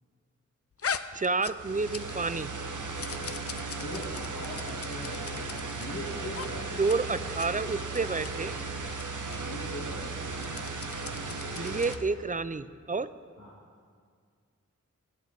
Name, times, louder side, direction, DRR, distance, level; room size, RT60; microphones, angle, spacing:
sound 1, 0.8-2.3 2.6-5.9 6.3-6.5 6.8-7.0 7.2-7.5 7.9-8.3 8.9-9.0 9.3-9.4 10.2-12.1, left 6 dB, 50° left, 0.4 m, -40 dB
voice 1, 1.1-2.5 6.8-8.5 11.5-13.1, right 4 dB, 30° right, 14 dB, 0.4 m, -29 dB
sound 2, 1.5-12.0, right 3 dB, 80° right, 0.8 m, -36 dB
voice 2, 3.8-5.4 5.7-6.8 9.1-10.2 13.4-13.5, left 1 dB, 90° left, -5 dB, 1.7 m, -41 dB
17.0 x 8.6 x 3.9 m, 2.1 s
wide cardioid pair, 45°, 30 cm